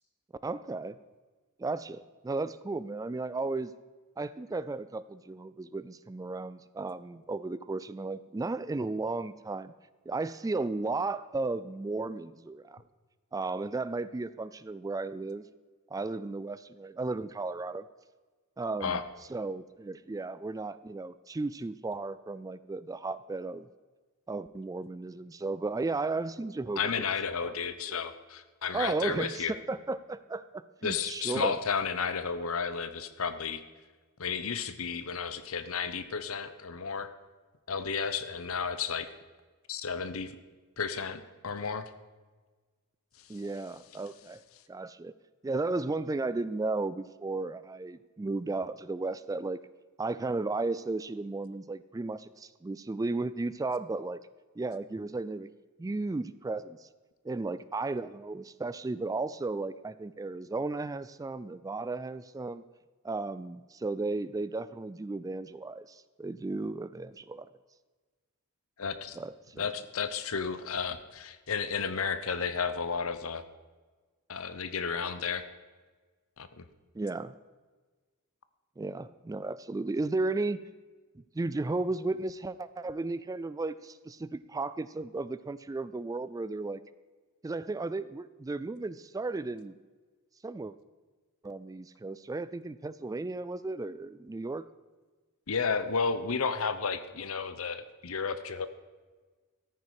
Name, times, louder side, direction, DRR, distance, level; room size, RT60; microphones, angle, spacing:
voice 1, 0.4-1.0 1.6-3.7 4.2-9.7 10.1-12.8 13.3-15.5 15.9-17.8 18.6-19.0 19.3-23.7 24.3-26.8 27.4-27.5 27.9-28.0 28.7-31.6 43.3-44.4 44.7-45.1 45.4-49.6 50.0-54.2 54.6-55.5 55.8-56.9 57.2-62.6 63.0-67.5 69.2-69.5 76.9-77.4 78.8-80.6 81.3-86.8 87.4-89.7 90.4-90.7 91.4-94.7, right 3 dB, 15° right, 15 dB, 0.3 m, -34 dB
voice 2, 26.8-29.5 30.8-33.6 34.2-37.1 37.7-39.1 39.7-40.4 40.8-41.9 68.8-69.2 69.6-73.4 74.3-75.4 76.4-76.7 95.5-98.7, left 5 dB, 70° left, 12 dB, 0.9 m, -32 dB
14.0 x 9.5 x 4.8 m, 1.3 s
head